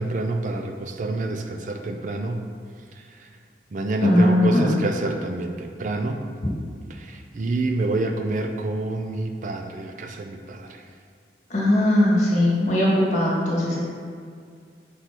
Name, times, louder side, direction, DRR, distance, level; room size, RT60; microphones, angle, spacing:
voice 1, 0.0-2.4 3.7-6.2 7.0-10.7, right 2 dB, 45° right, 4 dB, 0.4 m, -27 dB
voice 2, 4.0-4.7 11.5-13.8, left 1 dB, 40° left, -5 dB, 1.6 m, -19 dB
5.5 x 4.1 x 4.6 m, 2.2 s
head